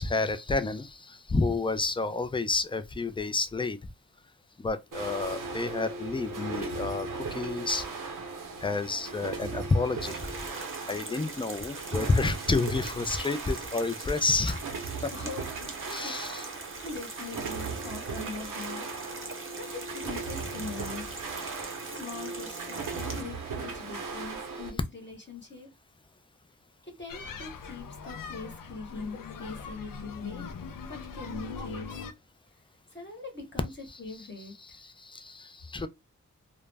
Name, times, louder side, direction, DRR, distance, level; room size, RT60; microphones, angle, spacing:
voice 1, 0.0-3.8 4.6-7.8 8.6-10.3 10.9-14.6 15.0-15.1 15.9-16.4 34.8-35.9, left 3 dB, 15° left, 0.3 m, -29 dB
sound 1, 4.9-24.7, right 4 dB, 85° right, 0.8 m, -38 dB
sound 2, 10.0-23.2, right 3 dB, 40° right, 0.7 m, -43 dB
voice 2, 14.9-18.9 19.2-21.1 21.8-25.7 26.8-30.5 30.8-32.0 32.9-34.8, left 3 dB, 35° left, 1.0 m, -42 dB
sound 3, 27.1-32.1, left 5 dB, 90° left, 0.5 m, -41 dB
2.3 x 2.1 x 3.2 m
wide cardioid pair, 90°, 32 cm